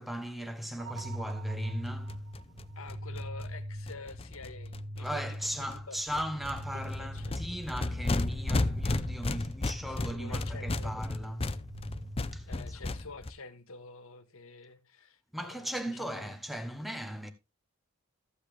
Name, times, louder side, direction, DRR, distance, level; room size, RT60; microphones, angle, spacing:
voice 1, 0.0-2.7 5.0-11.6 12.3-12.5 15.3-17.3, equal, ahead, 1.1 m, -38 dB
sound 1, 0.8-12.8, equal, 60° right, 1.3 m, -41 dB
sound 2, 1.0-1.1 1.3-1.4 1.6-1.7 1.9-5.1 5.4-5.8 6.1-13.3, left 2 dB, 25° left, 0.6 m, -34 dB
voice 2, 2.7-6.3 6.7-7.4 10.0-11.0 12.5-16.3, left 3 dB, 65° left, 1.6 m, -48 dB
14.0 x 8.0 x 3.4 m
head